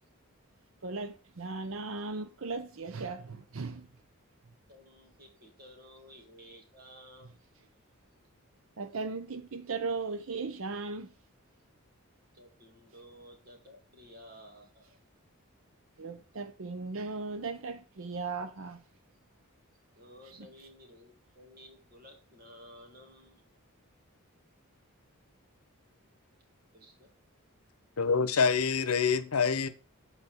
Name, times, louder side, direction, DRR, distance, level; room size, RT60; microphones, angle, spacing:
voice 1, 0.8-3.9 8.8-11.1 16.0-18.8, right 4 dB, 65° right, 0.6 m, -37 dB
voice 2, 4.7-7.4 12.3-15.0 20.0-23.4 26.7-27.1, equal, 45° right, 2.1 m, -54 dB
voice 3, 28.0-29.7, left 5 dB, 80° left, 0.8 m, -26 dB
7.7 x 4.2 x 4.3 m
head